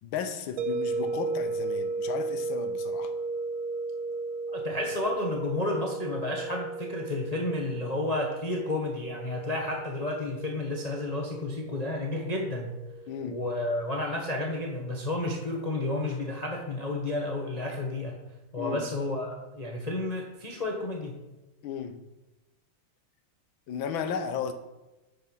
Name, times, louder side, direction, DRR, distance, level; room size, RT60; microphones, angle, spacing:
voice 1, 0.0-3.1 13.1-13.4 18.6-18.8 21.6-22.0 23.7-24.5, left 7 dB, 75° left, 1.6 m, -34 dB
sound 1, 0.6-15.5, right 3 dB, 90° right, 0.7 m, -36 dB
voice 2, 4.5-12.7 13.2-18.2 18.5-21.2, left 2 dB, 30° left, 0.8 m, -31 dB
9.1 x 5.5 x 6.1 m
omnidirectional pair, 2.2 m